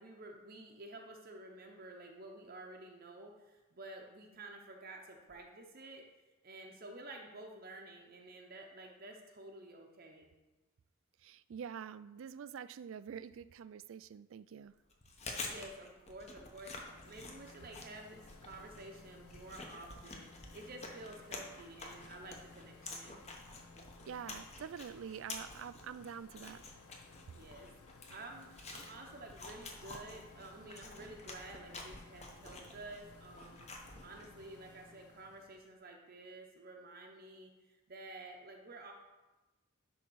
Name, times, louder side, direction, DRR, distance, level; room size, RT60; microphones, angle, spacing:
voice 1, 0.0-6.0 6.4-10.3 15.4-23.2 27.3-33.7 34.0-38.9, right 2 dB, 45° right, 1 dB, 0.8 m, -51 dB
voice 2, 11.2-14.7 24.1-26.6, right 7 dB, 60° right, 15 dB, 0.3 m, -46 dB
Chewing mastication, 14.9-34.4, left 3 dB, 30° left, 1.0 m, -49 dB
sound 1, 16.3-35.7, left 4 dB, 90° left, 0.7 m, -59 dB
10.5 x 3.7 x 6.2 m, 1.1 s
head